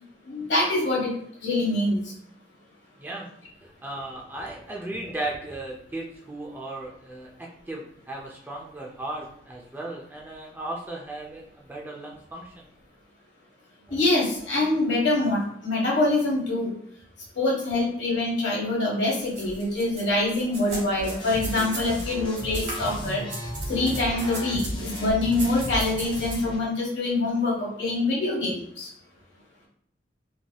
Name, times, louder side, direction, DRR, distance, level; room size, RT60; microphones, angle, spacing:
voice 1, 0.2-1.1 1.4-2.0 13.9-16.7 17.4-23.2 23.7-28.9, left 2 dB, 75° left, -4 dB, 1.2 m, -25 dB
voice 2, 3.0-3.3 3.6-12.6 13.9-14.0, right 2 dB, 10° right, -2 dB, 0.3 m, -36 dB
sound 1, 19.2-22.1 22.3-26.4, right 2 dB, 70° right, 1.3 m, -38 dB
sound 2, 21.0-26.6, equal, 25° left, 0.7 m, -34 dB
3.2 x 2.6 x 2.2 m, 0.65 s
head